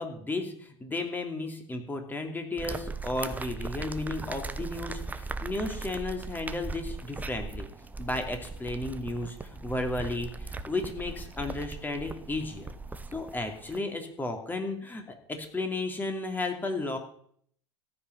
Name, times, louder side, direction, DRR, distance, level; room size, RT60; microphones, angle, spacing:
voice 1, 0.0-7.7 8.0-12.7 13.1-17.0, left 2 dB, 10° left, 4 dB, 2.8 m, -34 dB
sound 1, 2.6-13.8, right 3 dB, 10° right, 0.9 m, -39 dB
14.5 x 6.0 x 9.7 m, 0.63 s
figure-of-eight pair, 85°, 15 cm